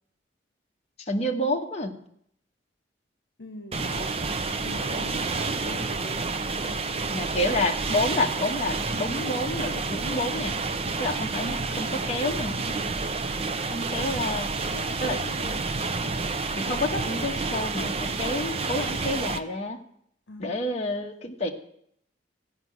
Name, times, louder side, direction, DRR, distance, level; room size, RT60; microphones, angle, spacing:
voice 1, 1.0-2.0 7.1-10.6 11.0-12.6 13.7-14.6 15.0-15.2 16.0-16.1 16.6-19.8 20.4-21.5, left 1 dB, 35° left, 0 dB, 1.3 m, -29 dB
voice 2, 3.4-4.1 4.6-5.3 5.6-6.9 14.7-15.7 16.6-16.8 20.3-20.6, left 2 dB, 70° left, 7 dB, 1.2 m, -42 dB
sound 1, 3.7-19.4, right 3 dB, 35° right, 0.7 m, -29 dB
15.5 x 5.7 x 9.4 m, 0.71 s
head